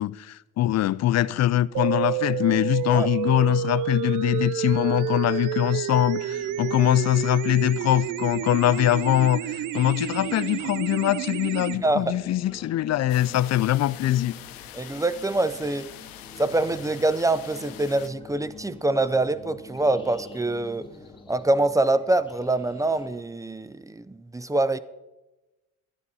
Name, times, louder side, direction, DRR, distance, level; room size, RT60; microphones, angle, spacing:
voice 1, 0.0-14.3, left 13 dB, 50° left, 0.5 m, -23 dB
sound 1, 1.7-11.7, right 13 dB, 60° right, 0.5 m, -30 dB
sound 2, 6.2-23.2, left 3 dB, 15° left, 1.9 m, -46 dB
voice 2, 11.8-12.2 14.7-15.9 16.4-20.9 21.3-24.8, right 2 dB, 10° right, 0.5 m, -25 dB
sound 3, 13.1-18.1, left 13 dB, 75° left, 0.8 m, -44 dB
12.0 x 9.9 x 4.1 m
supercardioid pair, 70°, 35 cm